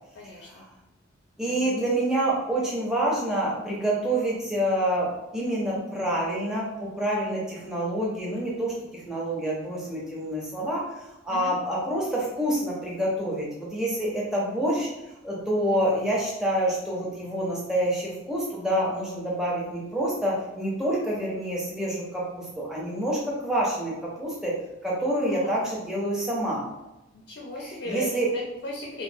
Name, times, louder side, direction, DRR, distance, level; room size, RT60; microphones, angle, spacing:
voice 1, 0.1-0.7 1.5-1.7 11.3-11.5 25.2-25.6 27.1-28.1 28.3-29.0, left 1 dB, 60° left, -2 dB, 0.4 m, -38 dB
voice 2, 1.4-14.9 15.2-24.5 24.8-26.6 27.9-28.3, right 1 dB, 5° right, -5 dB, 0.5 m, -27 dB
3.0 x 2.0 x 2.6 m, 0.95 s
head